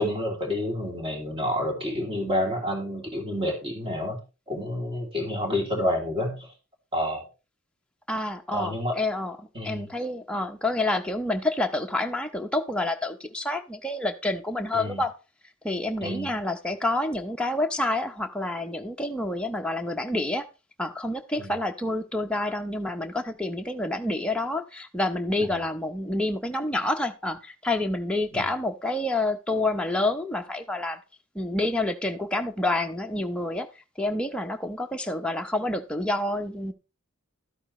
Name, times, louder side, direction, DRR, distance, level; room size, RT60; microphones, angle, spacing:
voice 1, 0.0-4.2 4.5-6.5 6.9-7.3 8.5-9.0 9.5-9.8 14.7-15.0 16.0-16.3 21.4-21.5 25.4-25.6 28.3-28.5, left 1 dB, 25° right, 3.0 m, -29 dB
voice 2, 8.1-9.4 9.6-15.1 15.6-20.4 20.8-31.0 31.3-33.7 34.0-36.7, left 2 dB, 5° left, 0.8 m, -28 dB
12.0 x 8.7 x 3.2 m
head